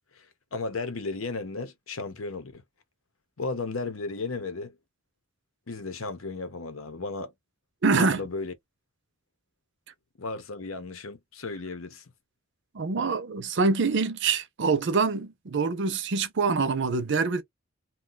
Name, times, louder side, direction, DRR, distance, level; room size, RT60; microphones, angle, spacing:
voice 1, 0.5-2.6 3.4-4.7 5.7-7.3 8.0-8.5 10.2-12.0, left 3 dB, 85° left, 0.9 m, -34 dB
voice 2, 7.8-8.2 12.7-17.4, right 4 dB, 60° right, 0.6 m, -25 dB
2.8 x 2.3 x 3.9 m
head